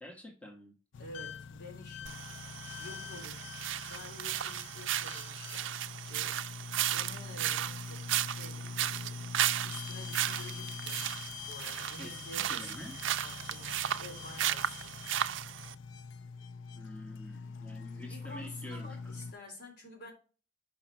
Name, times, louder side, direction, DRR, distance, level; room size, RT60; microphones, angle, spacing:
voice 1, 0.0-0.7 12.0-13.0 16.8-19.2, left 1 dB, 5° left, 1.2 m, -48 dB
sound 1, 0.9-19.3, left 5 dB, 90° left, 0.4 m, -44 dB
voice 2, 1.0-2.4 2.8-3.6 3.9-6.4 6.9-11.0 11.4-12.9 13.2-14.9 18.0-20.1, left 1 dB, 60° left, 3.3 m, -50 dB
sound 2, 2.1-15.7, right 11 dB, 90° right, 0.4 m, -35 dB
5.9 x 5.1 x 4.3 m
head